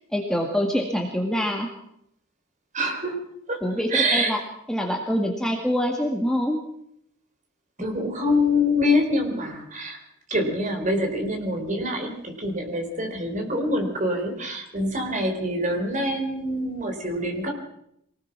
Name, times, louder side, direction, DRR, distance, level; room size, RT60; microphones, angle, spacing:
voice 1, 0.1-1.7 3.6-4.4 4.7-6.6, equal, 5° left, 1 dB, 1.9 m, -25 dB
voice 2, 2.7-3.2 3.5-4.3 7.8-10.0 10.3-17.5, left 1 dB, 35° right, 4 dB, 4.2 m, -25 dB
24.0 x 19.0 x 6.0 m, 0.75 s
head